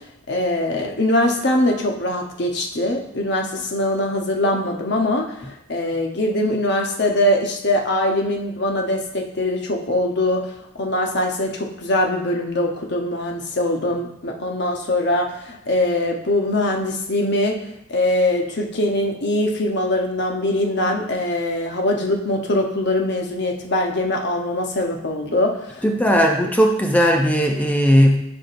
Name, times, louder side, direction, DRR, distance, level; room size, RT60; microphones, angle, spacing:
voice 1, 0.3-10.5 10.7-17.6 17.9-26.3, left 1 dB, 55° left, 2 dB, 1.0 m, -22 dB
voice 2, 25.8-28.2, equal, 10° left, 2 dB, 0.5 m, -17 dB
11.0 x 4.9 x 2.6 m, 0.81 s
head